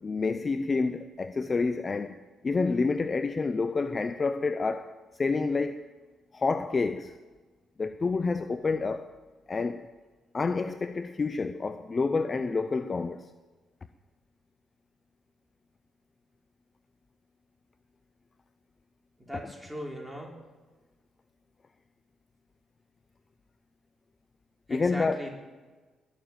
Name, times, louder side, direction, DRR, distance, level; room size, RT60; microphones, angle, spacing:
voice 1, 0.0-2.1 2.4-4.9 5.2-5.8 6.3-7.1 7.8-9.1 9.5-9.9 10.3-13.3 24.7-25.2, left 4 dB, 35° left, 0.6 m, -28 dB
voice 2, 19.2-20.4 24.7-25.3, equal, 5° right, 3.8 m, -39 dB
20.5 x 7.0 x 9.1 m
cardioid pair, 90°, 0 cm